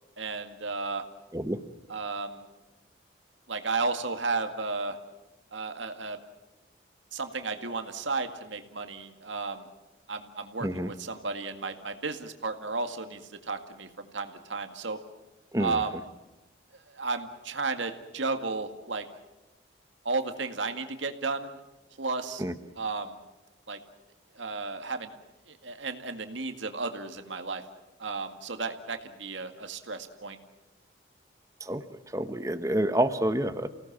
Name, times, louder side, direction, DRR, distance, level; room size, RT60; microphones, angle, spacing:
voice 1, 0.2-1.0 1.9-2.5 3.5-5.0 5.5-6.2 7.1-9.7 10.1-15.0 15.6-16.0 16.9-19.1 20.0-21.6 22.0-22.4 22.8-23.2 23.7-23.8 24.4-25.1 25.5-27.6 28.0-30.4, right 3 dB, 90° right, 7 dB, 2.0 m, -33 dB
voice 2, 10.6-10.9 15.5-15.8 22.4-22.5 31.6-31.8 32.1-33.7, right 1 dB, 15° right, 9 dB, 1.1 m, -28 dB
29.5 x 17.5 x 7.4 m, 1.1 s
head